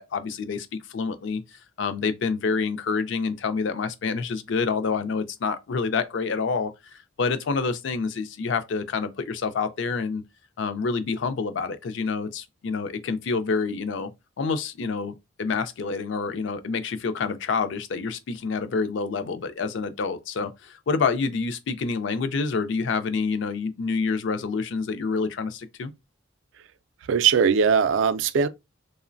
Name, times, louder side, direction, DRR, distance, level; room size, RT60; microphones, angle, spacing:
voice 1, 0.0-10.2 10.6-14.1 14.4-25.9, left 4 dB, 65° left, 0.4 m, -28 dB
voice 2, 27.1-28.5, right 6 dB, 70° right, 0.3 m, -20 dB
3.1 x 2.0 x 2.5 m
head